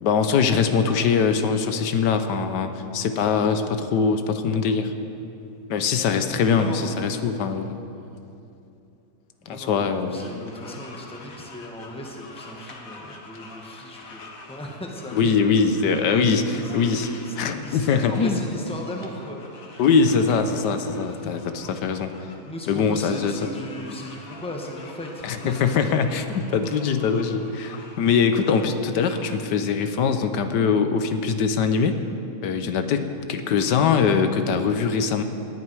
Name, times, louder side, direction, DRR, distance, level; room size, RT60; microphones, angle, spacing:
voice 1, 0.0-4.9 5.7-7.8 9.5-10.4 15.1-17.1 17.4-18.4 19.8-22.1 22.7-23.4 25.2-32.0 32.4-35.2, left 5 dB, 85° left, 8 dB, 1.4 m, -22 dB
voice 2, 6.5-7.2 9.4-15.4 16.0-19.4 22.4-25.7, left 1 dB, 5° left, 0 dB, 1.2 m, -37 dB
sound 1, 10.1-29.3, left 3 dB, 55° left, 1.8 m, -46 dB
18.5 x 10.5 x 4.7 m, 2.6 s
omnidirectional pair, 1.8 m